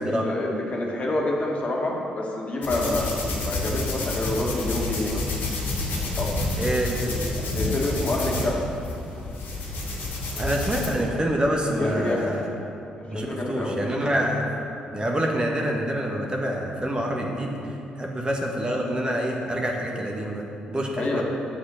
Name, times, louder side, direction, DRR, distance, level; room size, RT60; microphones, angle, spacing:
voice 1, 0.0-5.3 6.2-6.4 7.5-8.6 11.8-12.3 13.1-13.8 21.0-21.2, left 2 dB, 40° left, -2 dB, 2.0 m, -27 dB
sound 1, 2.6-10.9, left 2 dB, 65° left, 2.1 m, -29 dB
voice 2, 6.6-7.0 10.4-12.5 13.1-14.5 14.9-17.6 18.0-21.2, right 1 dB, 25° right, 0 dB, 1.4 m, -26 dB
7.7 x 6.6 x 6.4 m, 2.7 s
hypercardioid pair, 50°, 3 cm